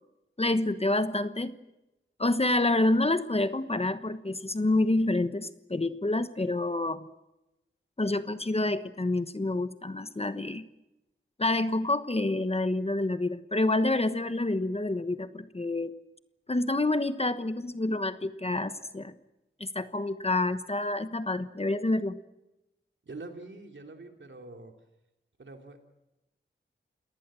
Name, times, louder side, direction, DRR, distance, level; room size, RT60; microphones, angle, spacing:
voice 1, 0.4-1.6 2.2-7.1 8.0-10.7 11.4-15.9 16.5-19.1 19.6-22.2, left 2 dB, 30° left, 11 dB, 1.2 m, -28 dB
voice 2, 23.0-24.7 25.4-25.9, right 2 dB, 65° right, 4 dB, 3.2 m, -45 dB
28.5 x 19.0 x 7.7 m, 0.94 s
wide cardioid pair, 75°, 21 cm